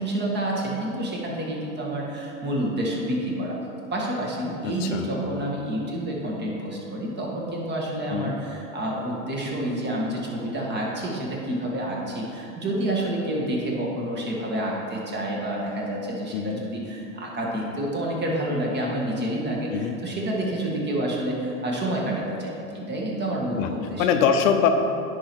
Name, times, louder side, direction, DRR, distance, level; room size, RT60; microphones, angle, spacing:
voice 1, 0.0-3.6 3.9-24.1, right 1 dB, 25° right, -2 dB, 1.7 m, -28 dB
voice 2, 4.6-5.1 8.1-8.3 16.3-16.6 19.7-20.0 23.5-23.7 24.0-24.7, left 7 dB, 70° left, 6 dB, 0.8 m, -23 dB
10.0 x 4.8 x 4.6 m, 2.8 s
supercardioid pair, 120°, 41 cm